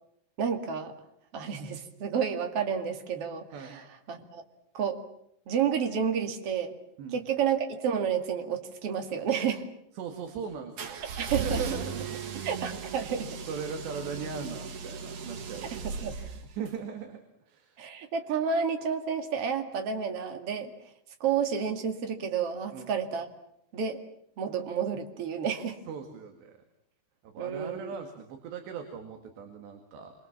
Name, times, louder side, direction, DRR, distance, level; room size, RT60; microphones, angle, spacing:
voice 1, 0.4-0.9 1.3-3.8 4.1-4.4 4.7-5.0 5.5-6.8 7.1-9.7 11.2-11.6 12.5-13.4 15.8-16.2 17.8-20.7 21.2-23.3 23.7-24.0 24.4-25.8 27.4-27.9, right 7 dB, 40° right, 5 dB, 2.4 m, -30 dB
voice 2, 9.9-11.0 11.3-12.6 13.5-16.2 16.6-17.9 22.7-22.9 25.9-26.6 27.2-30.1, right 7 dB, 70° right, 5 dB, 4.2 m, -39 dB
sound 1, 10.8-16.7, right 5 dB, 85° right, 1.3 m, -37 dB
28.0 x 25.0 x 7.3 m, 0.75 s
omnidirectional pair, 5.3 m